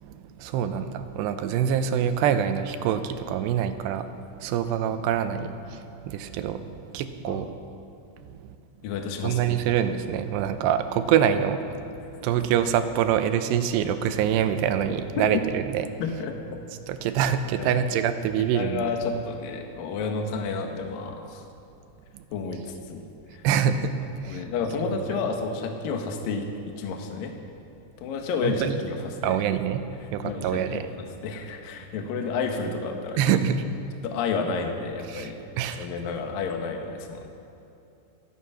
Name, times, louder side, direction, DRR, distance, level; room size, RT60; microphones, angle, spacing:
voice 1, 0.0-7.5 8.2-8.4 9.2-11.8 12.1-15.9 16.9-18.8 22.1-22.2 23.4-24.4 28.4-28.8 29.2-29.8 30.1-30.9 33.2-33.7 35.1-35.3 35.6-35.9, right 9 dB, 80° right, 9 dB, 2.8 m, -25 dB
voice 2, 8.8-9.4 15.2-15.4 16.0-16.6 17.6-17.7 18.5-21.4 22.3-22.6 22.9-23.0 23.3-23.4 24.3-26.4 26.8-27.3 28.0-29.0 29.3-29.4 30.2-30.8 31.2-33.3 34.0-35.5 35.8-37.3, left 4 dB, 65° left, 3 dB, 2.7 m, -30 dB
27.0 x 9.4 x 5.7 m, 2.8 s
omnidirectional pair, 5.1 m